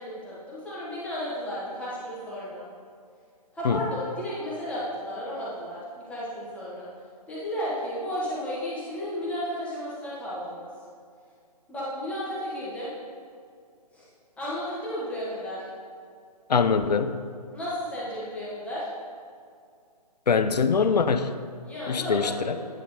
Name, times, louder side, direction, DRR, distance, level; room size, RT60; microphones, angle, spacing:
voice 1, 0.0-2.6 3.5-6.9 7.3-10.7 11.7-12.9 13.9-14.1 14.4-15.7 17.5-18.9 21.6-22.6, equal, 5° left, -8 dB, 1.2 m, -33 dB
voice 2, 16.5-17.2 20.3-21.3 21.9-22.5, left 5 dB, 80° left, 11 dB, 0.5 m, -23 dB
9.3 x 3.3 x 5.1 m, 2.3 s
figure-of-eight pair, 145°, 21 cm